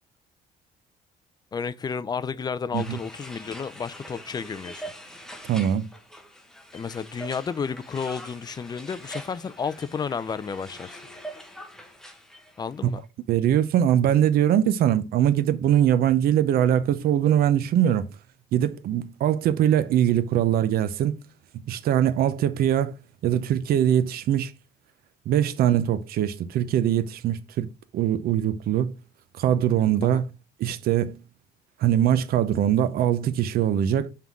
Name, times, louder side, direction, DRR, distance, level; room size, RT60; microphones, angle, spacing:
voice 1, 1.5-4.9 6.7-11.0 12.6-13.0 30.0-30.3, left 6 dB, 25° left, 0.5 m, -32 dB
sound 1, 2.7-12.8, equal, 5° left, 1.1 m, -43 dB
voice 2, 5.5-5.8 13.3-18.0 18.5-21.1 21.7-22.9 23.2-24.5 25.3-27.7 27.9-28.9 29.4-30.2 30.6-31.2 31.8-34.1, right 10 dB, 65° right, 0.7 m, -22 dB
5.6 x 3.8 x 6.0 m
cardioid pair, 110°, 17 cm